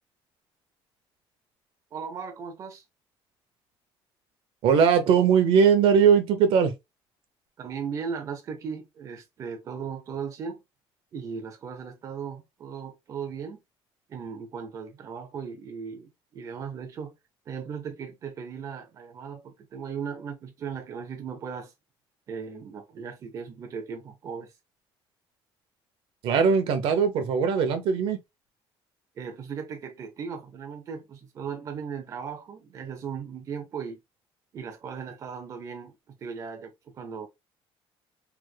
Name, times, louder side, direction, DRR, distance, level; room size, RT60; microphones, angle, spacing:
voice 1, 1.9-2.8 7.6-10.6 11.1-13.6 14.1-17.2 17.5-21.7 22.3-24.5 29.2-34.0 34.5-37.3, right 6 dB, 35° right, 0.5 m, -37 dB
voice 2, 4.6-6.7 26.2-28.2, right 6 dB, 65° right, 0.7 m, -20 dB
3.4 x 2.1 x 3.2 m
cardioid pair, 165°, 10 cm